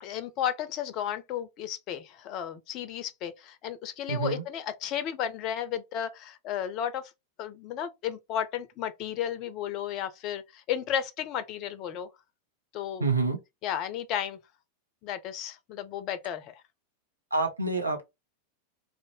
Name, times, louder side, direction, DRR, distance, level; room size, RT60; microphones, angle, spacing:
voice 1, 0.0-7.1 7.4-12.1 12.7-13.1 13.6-14.4 15.0-16.6, left 10 dB, 40° left, 0.4 m, -33 dB
voice 2, 4.1-4.4 13.0-13.4 17.3-18.0, right 3 dB, 80° right, 0.6 m, -27 dB
2.6 x 2.0 x 3.0 m
figure-of-eight pair, 90°, 0 cm